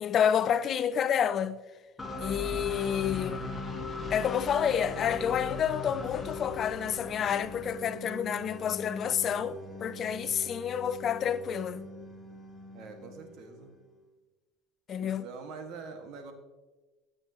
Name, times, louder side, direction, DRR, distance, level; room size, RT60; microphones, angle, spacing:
voice 1, 0.0-1.6 2.2-3.5 4.1-11.9 14.9-15.3, left 8 dB, 45° left, 0.5 m, -29 dB
sound 1, 2.0-13.8, left 2 dB, 15° left, 1.9 m, -40 dB
voice 2, 12.7-13.7 15.0-16.3, right 4 dB, 60° right, 1.9 m, -44 dB
15.5 x 7.7 x 3.1 m
hypercardioid pair, 85°, 0 cm